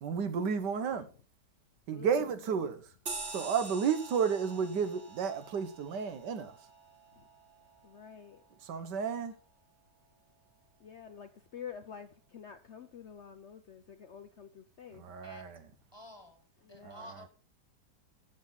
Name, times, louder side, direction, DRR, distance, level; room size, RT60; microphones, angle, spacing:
voice 1, 0.0-1.1 1.9-2.8 3.3-6.6 8.6-9.3 14.9-15.6 16.8-17.0, right 6 dB, 85° right, 1.7 m, -32 dB
voice 2, 1.9-2.4 7.1-7.3 7.8-8.4 10.8-15.1 16.6-17.1, left 8 dB, 60° left, 0.8 m, -48 dB
sound 1, 3.1-8.0, right 3 dB, 45° right, 2.1 m, -46 dB
voice 3, 15.9-17.3, equal, 15° left, 1.4 m, -51 dB
12.0 x 7.7 x 4.0 m
omnidirectional pair, 1.8 m